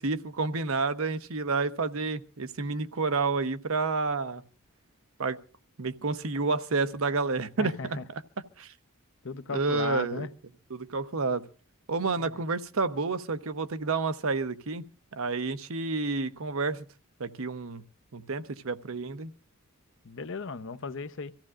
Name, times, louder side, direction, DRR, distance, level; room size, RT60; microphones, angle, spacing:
voice 1, 0.0-4.4 5.2-5.4 5.8-8.2 8.6-8.7 9.5-10.3 10.7-11.4 11.9-14.8 15.1-16.8 17.2-17.8 18.1-19.3, right 4 dB, 70° right, 0.8 m, -30 dB
voice 2, 7.6-8.0 9.2-10.3 12.3-12.4 20.0-21.3, left 4 dB, 60° left, 0.8 m, -36 dB
26.0 x 15.0 x 2.5 m
head